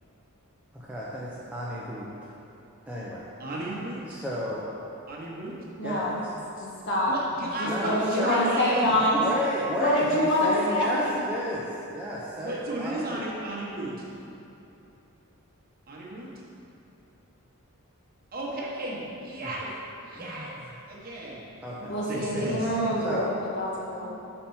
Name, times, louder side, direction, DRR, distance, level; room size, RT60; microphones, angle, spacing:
voice 1, 0.7-2.1 2.9-3.3 4.1-4.9 5.8-6.4 7.6-8.5 9.2-13.2 19.4-19.5 20.1-20.5 21.6-21.9 23.0-23.3, equal, 5° right, -7 dB, 0.6 m, -32 dB
voice 2, 3.4-4.2 5.1-5.5 7.1-9.0 12.4-14.1 15.9-16.3 18.3-22.7, right 1 dB, 45° right, -4 dB, 1.1 m, -34 dB
voice 3, 5.8-6.2 6.6-7.1 7.6-9.2 9.7-10.9 21.9-23.3 23.6-24.1, left 1 dB, 55° left, -5 dB, 1.4 m, -25 dB
5.8 x 4.4 x 5.5 m, 2.9 s
head